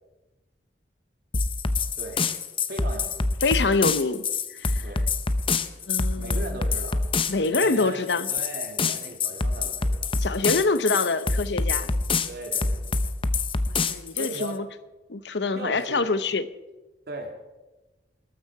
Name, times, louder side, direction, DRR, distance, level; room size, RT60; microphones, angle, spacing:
sound 1, 1.3-14.5, left 4 dB, 30° left, 0.8 m, -26 dB
voice 1, 2.7-3.2 4.8-5.0 6.2-7.0 7.4-10.1 12.2-12.9 14.2-14.6 15.5-16.0 17.1-17.3, right 1 dB, 65° right, 3 dB, 2.7 m, -37 dB
voice 2, 3.4-4.2 4.5-4.9 5.9-6.5 7.3-8.3 10.1-11.9 13.7-14.7 15.1-16.5, left 3 dB, 80° left, 13 dB, 0.9 m, -25 dB
21.0 x 12.5 x 4.8 m, 1.1 s
head